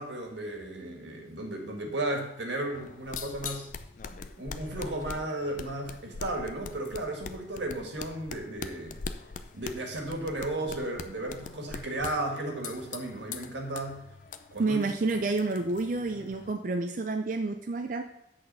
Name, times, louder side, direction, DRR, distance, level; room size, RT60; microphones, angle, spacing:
voice 1, 0.0-3.7 4.4-9.0 9.5-14.0 14.5-14.8, right 1 dB, 90° right, 2 dB, 1.7 m, -34 dB
sound 1, 2.7-16.5, left 5 dB, 45° left, 0.4 m, -43 dB
voice 2, 14.6-18.0, right 3 dB, 45° right, 5 dB, 0.4 m, -29 dB
7.8 x 4.2 x 6.8 m, 0.80 s
head